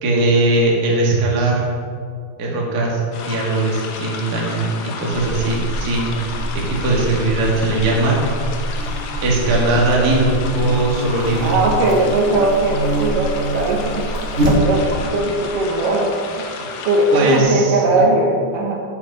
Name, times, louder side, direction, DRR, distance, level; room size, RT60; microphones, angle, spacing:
voice 1, 0.0-1.7 2.4-3.0 3.3-6.1 6.6-8.2 9.2-11.5 17.1-18.0, right 2 dB, 35° right, -3 dB, 1.6 m, -19 dB
sound 1, 3.1-17.4, left 5 dB, 75° left, 2.7 m, -32 dB
Buzz, 5.1-15.1, right 1 dB, 55° right, 0.8 m, -25 dB
voice 2, 11.4-14.0 14.5-16.6 16.9-18.8, right 2 dB, 70° right, 0 dB, 2.4 m, -19 dB
8.6 x 8.4 x 5.4 m, 2.2 s
omnidirectional pair, 4.2 m